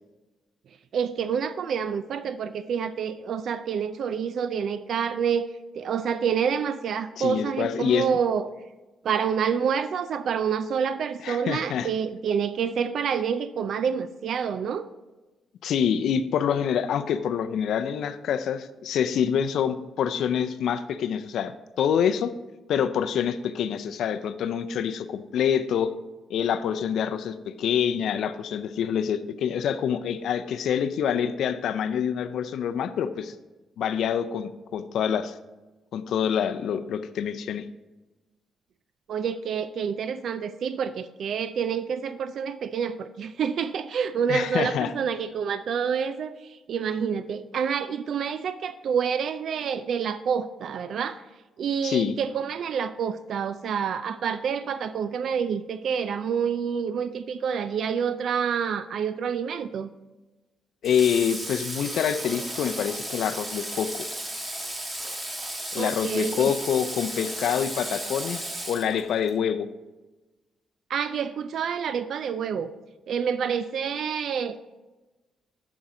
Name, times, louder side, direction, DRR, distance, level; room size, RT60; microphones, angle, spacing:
voice 1, 0.9-8.5 9.0-14.9 39.1-51.2 51.6-59.9 65.8-66.5 70.9-72.7 73.1-74.6, right 7 dB, 65° right, 12 dB, 0.3 m, -28 dB
voice 2, 7.2-8.1 11.2-11.9 15.6-22.3 22.7-25.9 26.3-33.3 33.8-35.4 35.9-37.7 44.3-44.9 51.8-52.2 60.8-63.9 65.7-69.7, left 8 dB, 75° left, 11 dB, 0.5 m, -26 dB
Water / Water tap faucet, 60.8-69.4, right 1 dB, 20° right, 1.5 m, -35 dB
7.3 x 7.2 x 3.8 m, 1.1 s
cardioid pair, 90°, 0 cm